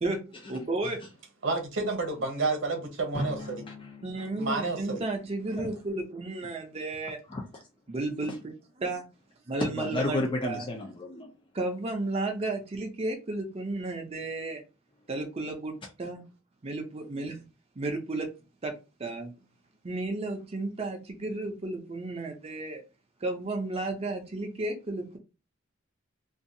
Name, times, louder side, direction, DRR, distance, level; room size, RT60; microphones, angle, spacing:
voice 1, 0.0-1.0 4.0-7.2 7.9-8.3 8.8-9.0 9.5-10.7 11.5-14.6 15.1-16.3 16.6-17.4 17.8-18.3 18.6-19.3 19.8-22.8 23.2-25.2, right 2 dB, 30° right, 0.5 m, -33 dB
voice 2, 1.4-3.6 4.4-5.0, right 3 dB, 65° right, 0.8 m, -30 dB
Drum, 3.1-6.0, equal, 65° left, 1.2 m, -40 dB
voice 3, 7.3-7.6 9.6-11.3, left 2 dB, 25° left, 0.4 m, -32 dB
2.6 x 2.3 x 2.6 m
head